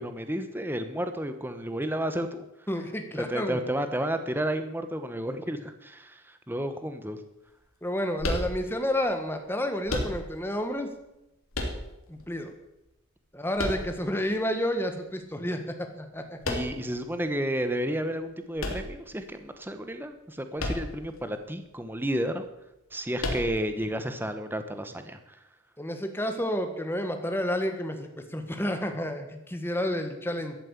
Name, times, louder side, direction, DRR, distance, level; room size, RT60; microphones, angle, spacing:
voice 1, 0.0-2.4 3.2-7.2 16.4-22.5 22.9-25.4, right 1 dB, 10° right, 8 dB, 1.0 m, -32 dB
voice 2, 2.7-3.6 7.8-10.9 12.1-12.5 13.3-16.4 25.8-30.6, equal, 10° left, 6 dB, 1.6 m, -30 dB
sound 1, 8.2-9.0 9.9-10.6 11.5-12.2 13.6-14.4 16.4-17.0 18.6-19.5 20.6-21.1 21.4-21.5 23.2-23.8, left 1 dB, 90° left, 3.0 m, -32 dB
14.0 x 8.9 x 8.2 m, 0.91 s
head